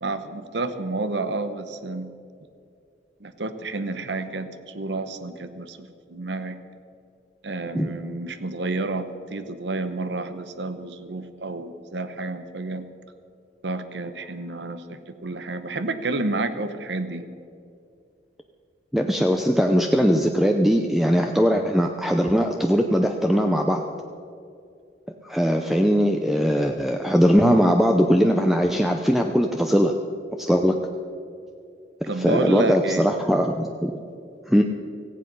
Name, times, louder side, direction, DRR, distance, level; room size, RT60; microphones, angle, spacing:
voice 1, 0.0-2.1 3.2-6.6 7.4-12.8 13.6-17.3 32.1-33.2, right 2 dB, 85° right, 10 dB, 1.0 m, -30 dB
voice 2, 18.9-23.8 25.2-29.9 30.4-30.8 32.2-33.9 34.5-34.6, equal, ahead, 3 dB, 0.6 m, -20 dB
17.5 x 15.0 x 5.4 m, 2.5 s
head